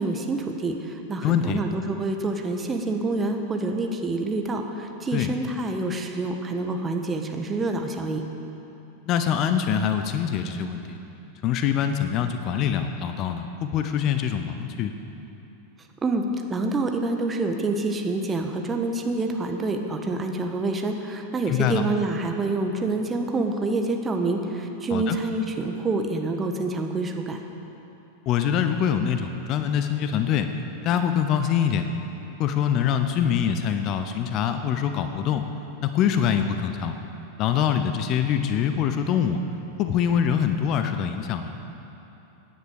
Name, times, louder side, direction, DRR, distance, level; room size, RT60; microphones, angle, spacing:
voice 1, 0.0-8.2 16.0-16.2 16.5-27.4, right 2 dB, 15° right, 4 dB, 1.3 m, -27 dB
voice 2, 1.2-1.6 5.1-5.3 9.1-11.0 11.4-14.9 21.5-21.8 24.9-25.2 28.3-30.5 30.8-31.8 32.4-35.4 35.8-36.9 37.4-39.4 39.8-41.5, left 8 dB, 35° left, 8 dB, 0.8 m, -24 dB
16.5 x 10.0 x 6.7 m, 3.0 s
figure-of-eight pair, 90°, 0 cm